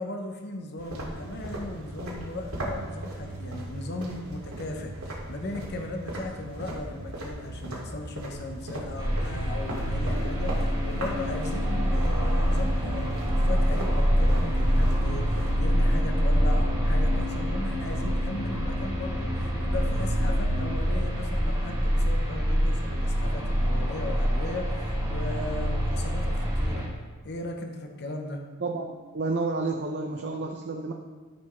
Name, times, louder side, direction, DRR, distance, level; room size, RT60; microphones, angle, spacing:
voice 1, 0.0-26.8 27.2-28.4, left 2 dB, 50° left, 3 dB, 0.9 m, -37 dB
sound 1, 0.8-15.6, right 1 dB, 85° right, 2.3 m, -38 dB
sound 2, 9.0-26.9, equal, 15° right, 1.9 m, -26 dB
sound 3, 10.0-20.7, left 1 dB, 15° left, 2.7 m, -36 dB
voice 2, 28.6-30.9, right 3 dB, 50° right, 1 dB, 0.6 m, -30 dB
13.0 x 5.8 x 3.2 m, 1.4 s
head